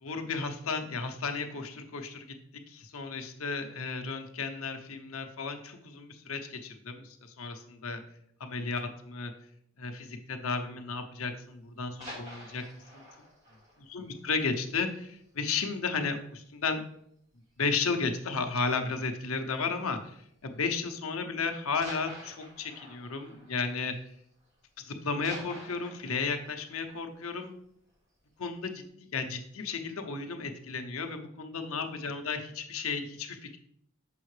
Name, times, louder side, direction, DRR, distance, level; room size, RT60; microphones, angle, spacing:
voice 1, 0.0-2.3 2.7-8.0 8.4-9.3 9.8-12.6 12.9-13.0 13.9-16.8 17.6-20.2 20.4-24.0 24.8-27.5 28.4-33.6, left 4 dB, 85° left, 6 dB, 0.8 m, -34 dB
sound 1, 11.8-15.3 15.6-15.7 16.2-16.3 16.6-16.7 17.6-18.0 19.2-19.5 20.3-20.4 21.8-24.6 24.9-28.0 28.4-28.5, equal, 35° right, 2.2 m, -48 dB
6.4 x 5.6 x 3.2 m, 0.71 s
head